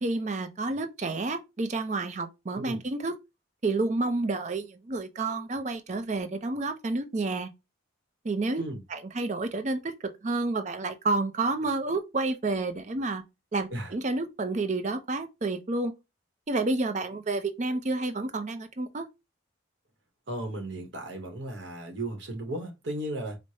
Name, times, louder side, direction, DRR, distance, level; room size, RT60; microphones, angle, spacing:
voice 1, 0.0-3.2 3.6-7.5 8.2-8.6 8.9-13.2 13.5-15.9 16.5-19.1, right 3 dB, 35° right, 0.5 m, -30 dB
voice 2, 20.3-23.4, right 1 dB, 65° right, 0.9 m, -35 dB
4.7 x 2.1 x 2.7 m
head